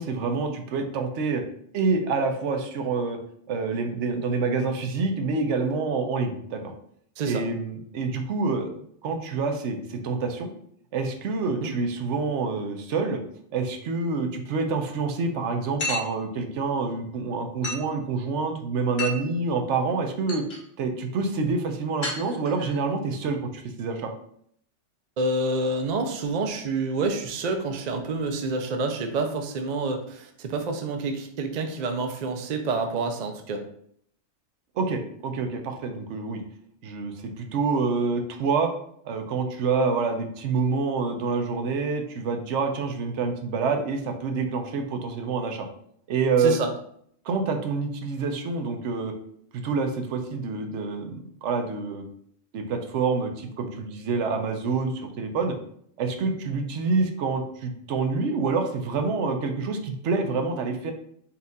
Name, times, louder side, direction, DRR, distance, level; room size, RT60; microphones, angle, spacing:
voice 1, 0.0-1.4 1.7-3.2 3.5-6.6 7.2-8.7 9.0-10.5 10.9-13.2 13.5-20.5 20.8-24.1 34.8-36.4 36.8-38.7 39.0-45.7 46.1-46.6 47.3-49.1 49.5-52.1 52.5-55.5 56.0-60.9, right 4 dB, 75° right, 5 dB, 0.9 m, -27 dB
sound 1, 15.8-16.2 17.6-17.9 19.0-19.3 19.9-20.0 20.3-20.6 22.0-22.7, left 2 dB, 60° left, 1.5 m, -31 dB
voice 2, 25.2-33.6 46.4-46.7, right 3 dB, 50° right, 5 dB, 0.5 m, -28 dB
4.2 x 2.4 x 3.9 m, 0.66 s
omnidirectional pair, 1.2 m